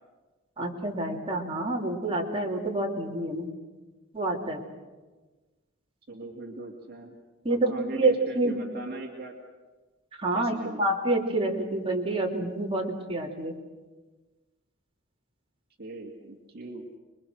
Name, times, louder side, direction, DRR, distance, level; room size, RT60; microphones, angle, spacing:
voice 1, 0.6-3.5 4.1-4.6 7.4-8.6 10.2-13.6, right 2 dB, 25° right, -1 dB, 3.1 m, -28 dB
voice 2, 6.1-7.2 7.5-9.3 10.3-10.8 15.8-16.9, right 2 dB, 50° right, 1 dB, 2.4 m, -40 dB
27.0 x 22.5 x 6.5 m, 1.3 s
head